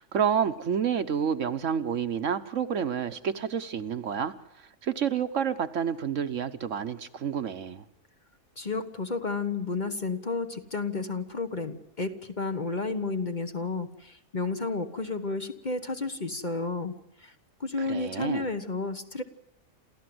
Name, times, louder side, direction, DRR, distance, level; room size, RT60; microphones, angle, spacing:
voice 1, 0.0-4.3 4.8-7.8 17.8-18.5, right 8 dB, 65° right, 10 dB, 1.3 m, -29 dB
voice 2, 8.6-17.0 17.2-17.3 17.6-19.2, left 3 dB, 35° left, 8 dB, 1.2 m, -32 dB
28.0 x 14.0 x 7.8 m, 0.87 s
omnidirectional pair, 1.4 m